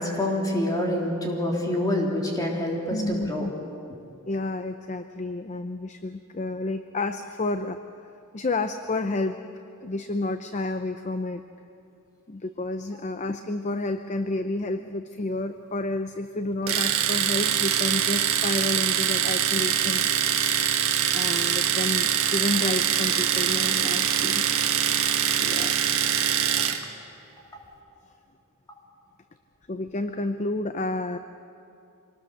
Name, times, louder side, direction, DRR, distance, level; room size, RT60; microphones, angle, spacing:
voice 1, 0.0-3.5 26.5-26.7, left 1 dB, 20° left, -2 dB, 3.5 m, -27 dB
voice 2, 2.9-3.5 4.3-7.8 8.3-9.4 9.8-11.4 12.3-20.1 21.1-24.4 25.4-25.8 28.1-28.2 29.7-31.2, left 2 dB, 35° left, 9 dB, 0.6 m, -30 dB
Domestic sounds home sounds, 16.7-26.8, right 9 dB, 80° right, 1.5 m, -24 dB
25.5 x 19.5 x 6.6 m, 2.6 s
head